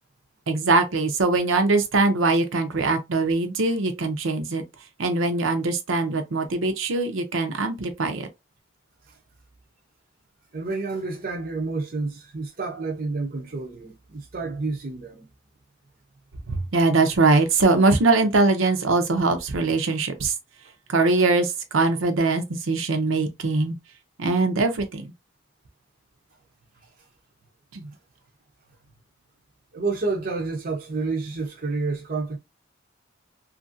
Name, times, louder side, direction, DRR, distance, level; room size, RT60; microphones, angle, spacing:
voice 1, 0.5-4.6 5.0-8.3 16.5-20.3 20.9-23.8 24.2-25.0 27.7-27.9, right 3 dB, 80° right, 0.6 m, -22 dB
voice 2, 10.5-15.3 29.7-32.4, right 3 dB, 45° right, 0.5 m, -29 dB
2.8 x 2.5 x 2.6 m
head